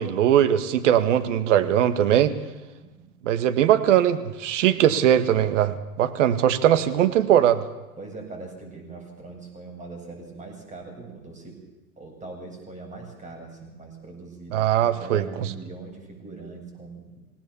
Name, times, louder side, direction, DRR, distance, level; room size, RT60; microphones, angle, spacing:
voice 1, 0.0-2.3 3.2-7.6 14.5-15.2, right 10 dB, 55° right, 10 dB, 1.9 m, -20 dB
voice 2, 2.8-3.2 6.6-6.9 8.0-11.6 12.0-17.2, right 3 dB, 15° right, 2 dB, 7.9 m, -41 dB
26.5 x 18.0 x 7.1 m, 1.1 s
figure-of-eight pair, 90°, 43 cm